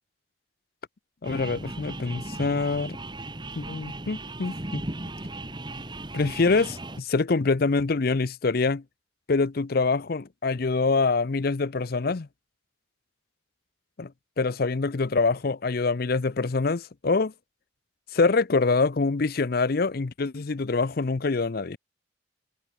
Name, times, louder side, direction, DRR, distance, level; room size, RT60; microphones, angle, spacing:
voice 1, 1.2-3.0 3.6-4.8 6.1-8.8 9.3-12.3 14.0-14.1 14.4-17.3 18.1-21.8, left 3 dB, 50° left, 0.6 m, -25 dB
sound 1, 1.2-7.0, right 2 dB, 25° right, 1.9 m, -37 dB
head